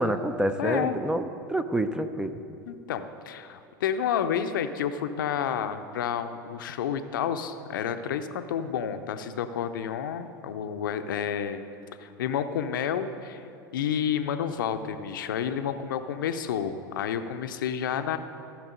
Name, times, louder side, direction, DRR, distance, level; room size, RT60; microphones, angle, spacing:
voice 1, 0.0-2.4, right 1 dB, 5° right, 10 dB, 0.6 m, -28 dB
voice 2, 0.6-0.9 2.7-11.6 12.0-13.4 13.7-18.2, left 8 dB, 70° left, 9 dB, 0.6 m, -30 dB
14.5 x 6.0 x 5.2 m, 2.7 s
hypercardioid pair, 85°, 11 cm